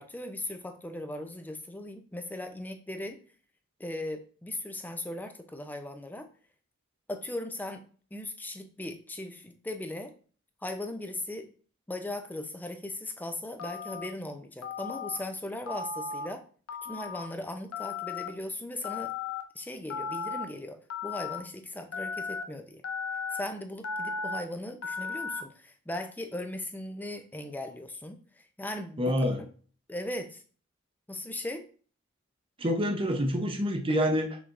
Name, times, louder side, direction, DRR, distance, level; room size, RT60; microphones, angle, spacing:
voice 1, 0.0-3.2 3.8-6.3 7.1-7.8 8.1-10.1 10.6-11.5 11.9-16.4 16.8-19.1 19.5-22.8 23.3-29.5 29.9-30.4 31.1-31.6, left 1 dB, 10° left, 6 dB, 0.5 m, -38 dB
Telephone, 13.6-14.1 14.6-15.2 15.7-16.3 16.7-17.3 17.7-18.3 18.8-19.4 19.9-20.4 20.9-21.4 21.9-22.4 22.8-23.4 23.8-24.4 24.8-25.4, left 5 dB, 80° left, 0.6 m, -35 dB
voice 2, 29.0-29.4 32.6-34.4, equal, 25° right, 3 dB, 0.7 m, -27 dB
6.1 x 3.3 x 2.5 m, 0.42 s
head